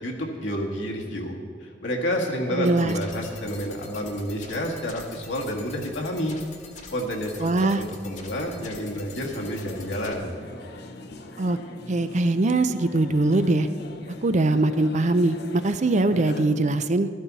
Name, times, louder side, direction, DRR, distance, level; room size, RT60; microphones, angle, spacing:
voice 1, 0.0-6.4 6.9-10.4, equal, 80° left, 0 dB, 1.9 m, -30 dB
voice 2, 2.5-3.0 7.4-7.8 11.4-11.6 11.9-13.7 14.2-17.1, right 2 dB, 40° right, 11 dB, 0.5 m, -22 dB
sound 1, 2.7-10.1, left 4 dB, 40° left, 1.4 m, -45 dB
sound 2, 8.8-16.5, left 2 dB, 65° left, 0.9 m, -42 dB
14.0 x 13.0 x 4.1 m, 2.1 s
head